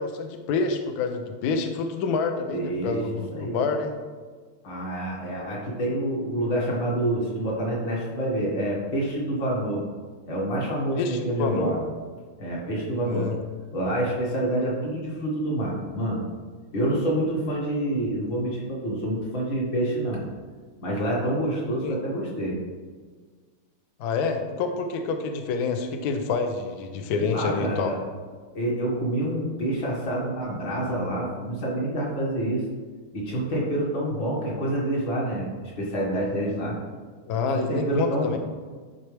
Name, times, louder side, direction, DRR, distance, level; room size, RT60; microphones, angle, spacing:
voice 1, 0.0-3.9 11.0-11.7 13.0-13.4 21.8-22.0 24.0-27.9 37.3-38.4, left 4 dB, 80° left, 5 dB, 0.8 m, -27 dB
voice 2, 2.5-3.0 3.3-3.6 4.6-9.8 10.3-11.8 12.4-13.3 13.7-16.2 16.7-20.2 20.8-22.6 27.2-28.0 28.5-32.6 33.1-36.8 37.5-38.4, right 1 dB, 60° left, -4 dB, 2.3 m, -27 dB
10.0 x 4.2 x 3.3 m, 1.5 s
omnidirectional pair, 2.4 m